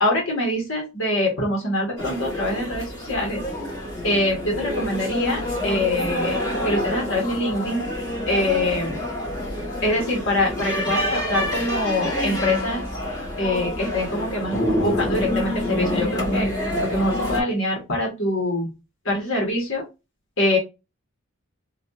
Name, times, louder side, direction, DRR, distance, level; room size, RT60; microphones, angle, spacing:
voice 1, 0.0-3.4 4.0-7.9 8.3-9.0 9.8-12.8 13.4-16.5 16.8-18.7 19.0-19.8 20.4-20.6, left 1 dB, 65° left, -1 dB, 1.5 m, -24 dB
sound 1, 2.0-17.4, left 1 dB, 20° left, 1.6 m, -27 dB
4.2 x 2.6 x 2.7 m, 0.25 s
head